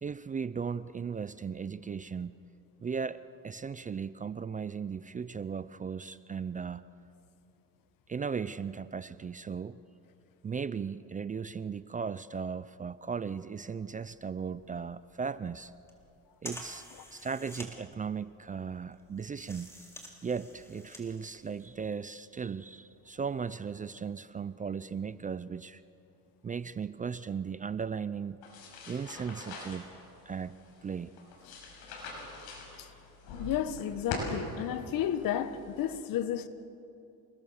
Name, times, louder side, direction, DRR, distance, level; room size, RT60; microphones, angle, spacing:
voice 1, 0.0-2.4 2.8-6.8 8.1-9.7 10.4-15.7 16.4-19.7 20.2-25.8 26.4-28.4 28.9-29.9 30.3-31.1, right 6 dB, 20° right, 0.5 m, -37 dB
sound 1, 14.0-21.9, equal, 5° left, 3.7 m, -50 dB
sound 2, 28.4-35.9, left 2 dB, 80° left, 6.1 m, -43 dB
voice 2, 33.4-36.5, left 10 dB, 60° left, 1.4 m, -32 dB
28.0 x 19.5 x 7.2 m
cardioid pair, 105°, 37 cm